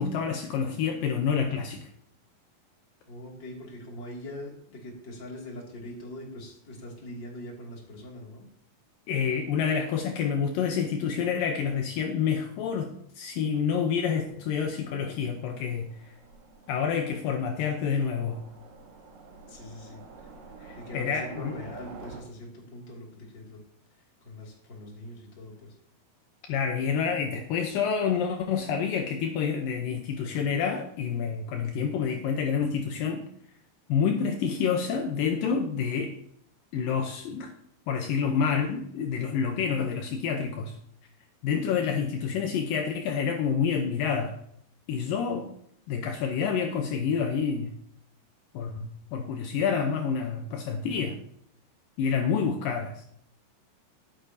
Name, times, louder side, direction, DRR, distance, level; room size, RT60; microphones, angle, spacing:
voice 1, 0.0-1.9 9.1-15.9 16.7-18.4 20.6-21.6 26.5-33.2 33.9-36.1 36.7-37.5 37.9-40.8 41.4-44.4 44.9-45.5 45.9-47.7 48.5-51.2 52.0-53.0, left 6 dB, 80° left, 4 dB, 2.0 m, -28 dB
voice 2, 3.1-8.5 19.5-23.6 23.9-25.8, left 1 dB, 30° left, -1 dB, 2.6 m, -43 dB
Train, 14.0-22.2, right 4 dB, 60° right, 2.0 m, -49 dB
16.5 x 9.2 x 2.8 m, 0.66 s
omnidirectional pair, 5.1 m